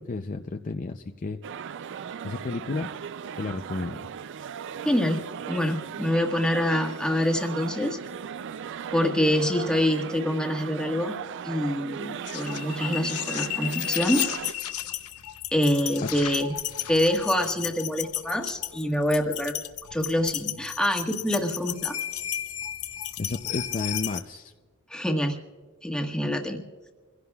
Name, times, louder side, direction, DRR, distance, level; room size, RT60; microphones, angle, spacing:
voice 1, 0.0-1.6 2.0-2.9 3.4-4.0 16.0-16.1 23.2-24.5, left 3 dB, 35° left, 5 dB, 0.5 m, -32 dB
sound 1, 1.4-14.5, right 7 dB, 55° right, 0.4 m, -37 dB
voice 2, 4.8-8.0 8.9-11.2 11.4-14.3 15.5-16.5 16.9-19.6 19.9-22.0 24.9-25.4 25.8-26.6, left 1 dB, 5° left, 2 dB, 1.4 m, -26 dB
sound 2, 12.3-24.2, left 12 dB, 90° left, 0.8 m, -33 dB
27.0 x 16.5 x 2.3 m, 1.4 s
head